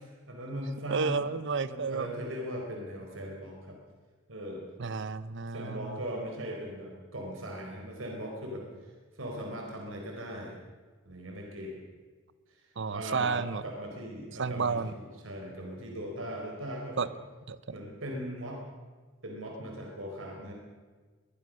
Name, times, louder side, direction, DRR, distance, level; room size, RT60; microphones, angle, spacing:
voice 1, 0.3-1.2 1.6-3.8 4.3-4.7 5.5-8.6 9.2-10.6 11.1-11.8 12.9-17.1 17.7-18.6 19.2-20.5, equal, 85° right, 1 dB, 4.4 m, -39 dB
voice 2, 0.9-2.1 4.8-6.0 12.8-13.6 14.4-14.9 17.0-17.1 17.5-17.6, right 5 dB, 65° right, 15 dB, 0.9 m, -31 dB
22.0 x 21.5 x 6.4 m, 1.4 s
head